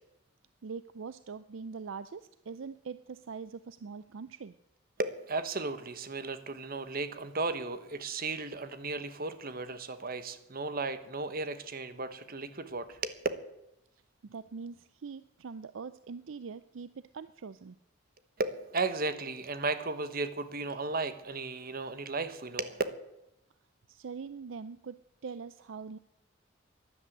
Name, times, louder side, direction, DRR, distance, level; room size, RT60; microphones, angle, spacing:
voice 1, 0.6-4.5 14.2-17.8 23.9-26.0, right 5 dB, 70° right, 14 dB, 0.5 m, -43 dB
voice 2, 5.0-13.1 18.4-22.8, right 3 dB, 45° right, 11 dB, 1.2 m, -35 dB
12.5 x 11.0 x 9.3 m, 0.88 s
head